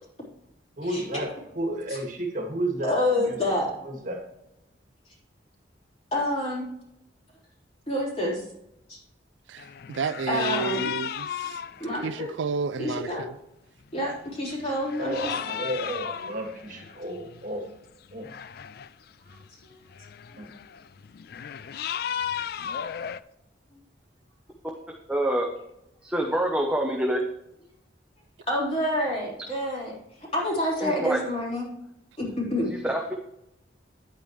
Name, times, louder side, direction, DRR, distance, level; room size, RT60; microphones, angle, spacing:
voice 1, 0.8-3.4 3.8-4.2 15.0-17.6 18.1-18.3 20.4-20.5, right 1 dB, 45° right, 1.9 m, -32 dB
voice 2, 2.8-3.7 6.1-6.7 7.9-8.4 8.9-9.0 10.3-10.9 11.8-12.3 12.8-13.3 13.9-15.3 19.3-19.4 19.6-19.7 28.5-29.9 30.3-31.6 32.2-32.7, left 1 dB, 30° left, 3.7 m, -27 dB
voice 3, 9.5-11.6 12.0-13.3, right 5 dB, 80° right, 0.4 m, -31 dB
sound 1, 9.6-12.2 13.1-13.2 13.9-14.2 14.5-17.5 18.1-18.9 19.3-23.2, left 8 dB, 55° left, 0.3 m, -35 dB
voice 4, 25.1-25.5 26.0-27.2 30.8-31.2 32.7-33.1, right 1 dB, 5° right, 0.8 m, -26 dB
10.0 x 8.8 x 3.2 m
head